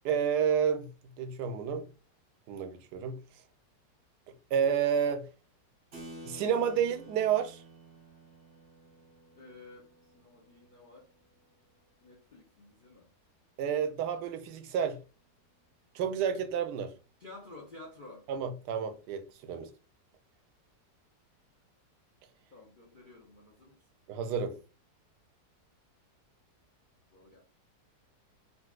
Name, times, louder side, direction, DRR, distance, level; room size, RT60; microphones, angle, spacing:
voice 1, 0.0-0.9 1.2-1.9 2.5-3.2 4.5-5.3 6.3-7.6 13.6-15.0 15.9-16.9 18.3-19.7 24.1-24.6, right 7 dB, 75° right, 1.1 m, -30 dB
Keyboard (musical), 5.9-11.9, right 1 dB, 50° right, 0.8 m, -52 dB
voice 2, 9.4-11.1 12.0-13.1 17.2-18.3 22.5-23.8 27.1-27.4, left 2 dB, 80° left, 0.4 m, -52 dB
3.9 x 2.3 x 2.3 m
omnidirectional pair, 1.9 m